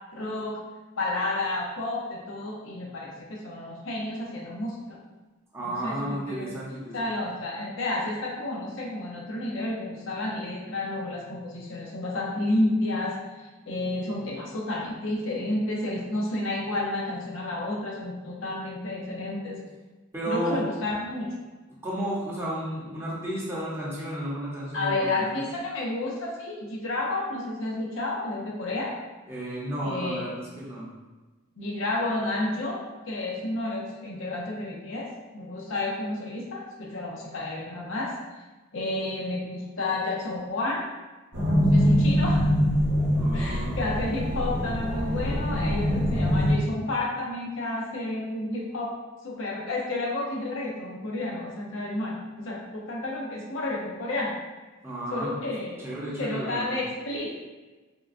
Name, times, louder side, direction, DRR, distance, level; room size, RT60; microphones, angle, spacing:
voice 1, 0.1-0.6 1.0-5.0 5.6-6.5 6.9-19.6 20.3-21.3 24.7-28.9 29.8-30.3 31.6-38.1 38.7-40.8 41.7-42.4 43.3-49.0 49.2-54.3 55.1-55.8 56.2-57.3, left 2 dB, 60° left, -2 dB, 0.6 m, -31 dB
voice 2, 5.5-7.1 20.1-20.6 21.8-25.4 29.3-30.9 43.1-43.8 54.8-55.5 55.8-56.8, right 1 dB, 10° right, -7 dB, 0.7 m, -33 dB
sound 1, 41.3-46.5, equal, 55° right, 0.8 m, -23 dB
3.6 x 2.2 x 2.4 m, 1.2 s
head